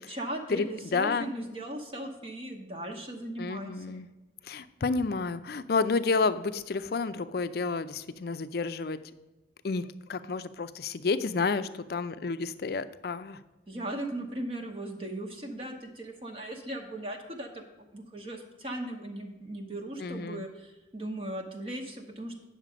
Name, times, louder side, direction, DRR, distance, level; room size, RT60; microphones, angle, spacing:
voice 1, 0.0-4.0 13.7-22.4, right 1 dB, 30° right, 2 dB, 1.0 m, -38 dB
voice 2, 0.9-1.3 3.4-4.1 4.4-9.0 9.6-13.4 20.0-20.4, left 4 dB, 55° left, 12 dB, 0.5 m, -30 dB
9.0 x 6.6 x 5.0 m, 1.1 s
head